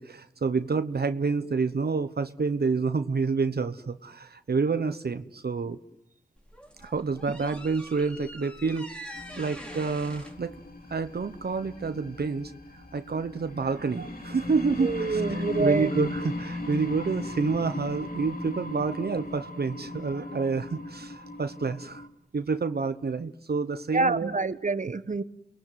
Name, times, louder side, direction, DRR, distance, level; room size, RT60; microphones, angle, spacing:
voice 1, 0.0-5.8 6.8-8.9 9.4-10.5 10.9-22.0 22.3-24.4, right 4 dB, 70° right, 1.1 m, -28 dB
sound 1, 6.4-11.6, equal, 5° left, 4.1 m, -45 dB
sound 2, 9.1-22.1, left 2 dB, 60° left, 3.4 m, -38 dB
voice 2, 14.8-15.9 23.9-25.2, right 3 dB, 50° right, 1.3 m, -26 dB
29.5 x 20.5 x 9.3 m
cardioid pair, 45°, 17 cm